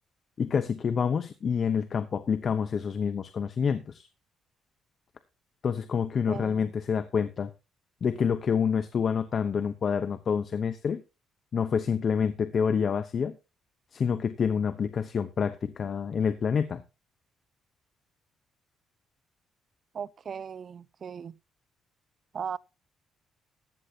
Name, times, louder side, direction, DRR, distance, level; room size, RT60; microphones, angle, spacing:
voice 1, 0.4-4.1 5.6-7.5 8.0-11.0 11.5-13.3 13.9-16.8, left 6 dB, 50° left, 0.9 m, -27 dB
voice 2, 6.3-6.7 19.9-21.4 22.3-22.6, right 7 dB, 50° right, 0.5 m, -37 dB
15.0 x 10.0 x 2.8 m
cardioid pair, 90°, 0 cm